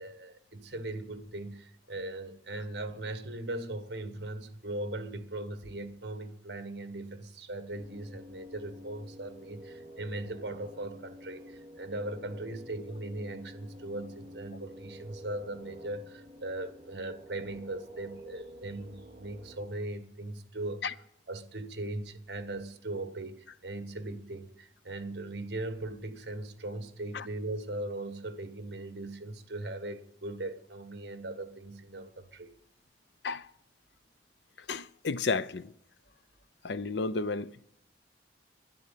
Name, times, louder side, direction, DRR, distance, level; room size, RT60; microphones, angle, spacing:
voice 1, 0.0-20.8 21.3-32.5, right 2 dB, 60° right, 1.5 m, -39 dB
sound 1, 7.7-19.6, equal, 30° right, 4.4 m, -49 dB
voice 2, 34.7-35.7 36.6-37.6, left 4 dB, 70° left, 0.6 m, -32 dB
12.0 x 11.0 x 8.4 m
head